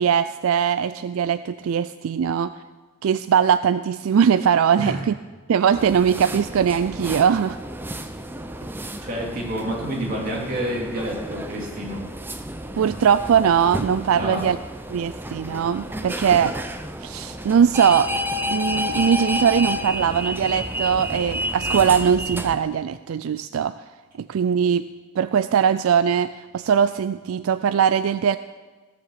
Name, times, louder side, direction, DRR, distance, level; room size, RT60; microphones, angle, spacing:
voice 1, 0.0-2.5 3.0-5.1 5.5-7.6 12.7-14.6 14.9-16.5 17.0-18.1 18.5-23.7 24.2-24.9 25.2-28.4, right 7 dB, 80° right, 13 dB, 0.3 m, -20 dB
sound 1, 5.7-22.6, equal, 10° right, 0.5 m, -31 dB
voice 2, 8.7-12.0 14.2-14.5, equal, 40° right, -3 dB, 3.1 m, -29 dB
15.5 x 7.0 x 6.7 m, 1.3 s
head